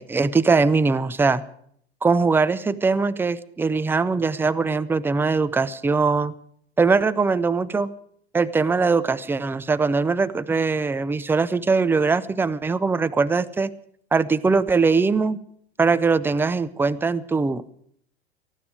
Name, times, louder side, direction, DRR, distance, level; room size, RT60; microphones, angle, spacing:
voice 1, 0.0-1.4 2.0-6.3 6.8-7.9 8.3-13.7 14.1-15.4 15.8-17.6, right 4 dB, 5° right, 15 dB, 0.6 m, -21 dB
19.0 x 15.0 x 5.0 m, 0.65 s
figure-of-eight pair, 90°, 32 cm